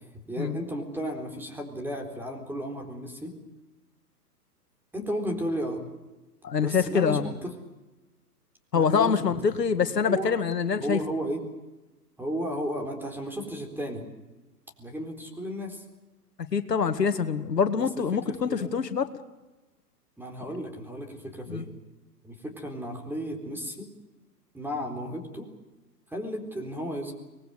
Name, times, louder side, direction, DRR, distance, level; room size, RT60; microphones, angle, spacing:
voice 1, 0.3-3.3 4.9-5.8 6.6-7.5 8.7-9.3 10.1-10.3 10.8-11.4 12.2-14.0 14.8-15.8 17.8-17.9 18.3-18.7 20.2-21.7 22.2-23.9 24.5-25.5 26.1-27.1, equal, 5° right, 4 dB, 4.0 m, -34 dB
voice 2, 6.4-7.3 8.7-11.0 16.5-19.1 21.5-21.6, left 6 dB, 85° left, 9 dB, 2.1 m, -25 dB
24.0 x 20.5 x 8.0 m, 1.1 s
hypercardioid pair, 130°, 47 cm